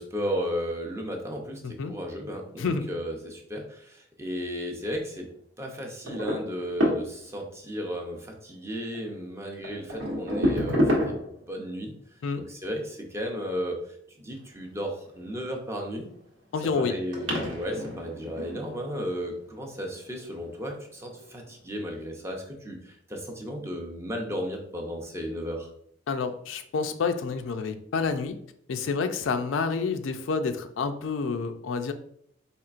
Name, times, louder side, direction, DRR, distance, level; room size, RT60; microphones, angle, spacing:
voice 1, 0.0-5.3 5.6-11.2 11.5-11.9 12.5-13.8 14.2-16.1 16.8-25.7, equal, 15° right, 1 dB, 0.6 m, -34 dB
voice 2, 1.6-2.0 2.6-2.9 12.2-12.4 16.5-17.0 26.1-28.4 28.7-31.9, left 5 dB, 85° left, 8 dB, 0.4 m, -29 dB
sound 1, 6.1-7.5 8.9-9.1 9.6-11.5 15.4-16.0 16.6-16.7 17.1-19.1 20.1-20.4 21.2-21.3 21.8-21.9, equal, 90° right, 1.1 m, -28 dB
4.3 x 3.0 x 2.4 m, 0.67 s
head